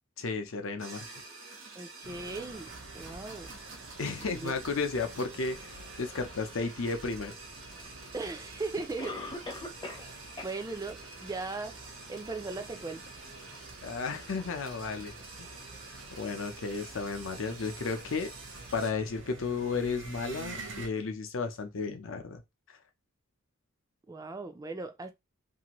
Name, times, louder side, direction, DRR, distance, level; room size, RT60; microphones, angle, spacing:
voice 1, 0.2-1.1 4.0-5.7 6.0-7.4 13.8-15.1 16.2-18.3 18.7-22.4, left 4 dB, 70° left, 0.6 m, -33 dB
sound 1, 0.8-18.9, right 3 dB, 80° right, 1.2 m, -48 dB
voice 2, 1.8-3.5 4.3-4.5 8.1-9.2 9.8-11.8 12.1-13.0 24.1-25.1, right 3 dB, 15° right, 0.3 m, -38 dB
sound 2, 2.0-20.9, right 2 dB, 60° right, 0.8 m, -49 dB
Cough, 7.9-8.0 9.0-10.1 10.4-10.5 11.0-11.1 11.7-11.8, left 2 dB, 20° left, 0.6 m, -39 dB
2.7 x 2.5 x 2.9 m
head